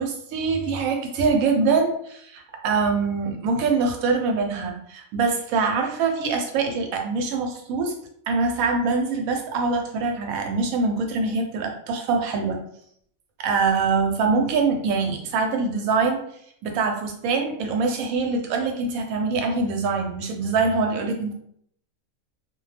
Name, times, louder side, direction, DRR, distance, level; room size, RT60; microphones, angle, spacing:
voice 1, 0.0-7.9 8.3-12.6 13.4-16.2 16.6-21.3, right 4 dB, 85° right, 3 dB, 1.0 m, -24 dB
2.3 x 2.1 x 3.2 m, 0.68 s
omnidirectional pair, 1.4 m